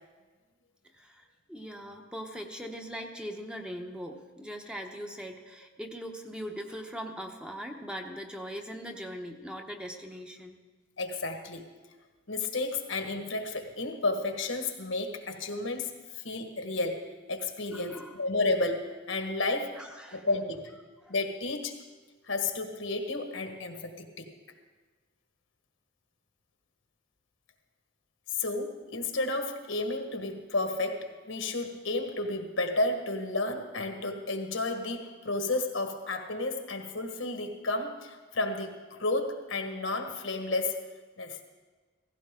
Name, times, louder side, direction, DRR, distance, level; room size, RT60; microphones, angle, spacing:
voice 1, 0.9-10.6 17.7-18.2 19.7-20.3 21.0-21.1, equal, 5° right, 3 dB, 0.9 m, -41 dB
voice 2, 11.0-11.6 12.3-15.9 16.2-19.8 20.1-20.7 21.1-21.8 22.3-24.3 28.4-40.8 41.2-41.4, left 2 dB, 80° left, 5 dB, 1.5 m, -32 dB
16.5 x 16.0 x 3.8 m, 1.3 s
head